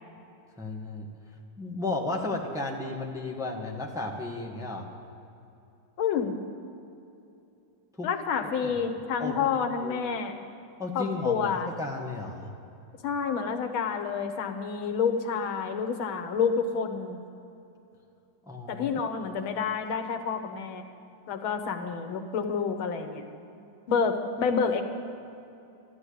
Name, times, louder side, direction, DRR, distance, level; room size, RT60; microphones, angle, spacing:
voice 1, 0.6-1.1 1.6-4.9 8.0-8.1 8.4-8.7 9.2-9.5 9.8-10.0 10.8-12.5 18.4-18.9, left 2 dB, ahead, -1 dB, 1.2 m, -34 dB
voice 2, 6.0-6.4 8.0-10.4 11.0-11.7 13.0-17.2 18.7-20.8 21.3-23.2 23.9-24.8, left 6 dB, 85° left, 6 dB, 1.9 m, -28 dB
13.5 x 11.5 x 8.5 m, 2.7 s
omnidirectional pair, 2.2 m